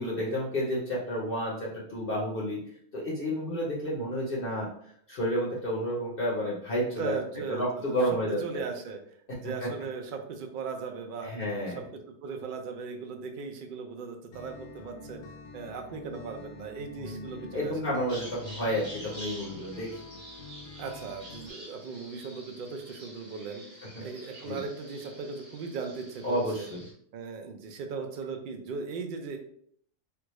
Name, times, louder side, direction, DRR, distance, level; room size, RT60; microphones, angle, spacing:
voice 1, 0.0-2.6 2.9-4.7 5.1-7.2 7.5-8.4 9.4-9.7 11.2-11.8 17.0-19.9 24.5-24.6 26.2-26.8, equal, 50° left, -4 dB, 0.9 m, -31 dB
voice 2, 7.0-8.0 8.4-9.0 9.4-11.3 11.7-15.2 15.5-18.0 20.8-23.6 24.0-26.7 27.1-29.4, right 5 dB, 60° right, 3 dB, 0.5 m, -38 dB
Acoustic guitar, 14.3-21.5, left 3 dB, 85° left, 1.0 m, -47 dB
Bird vocalization bird call bird song, 18.1-26.9, equal, 35° right, 0.8 m, -48 dB
3.4 x 2.4 x 3.0 m, 0.64 s
omnidirectional pair, 1.4 m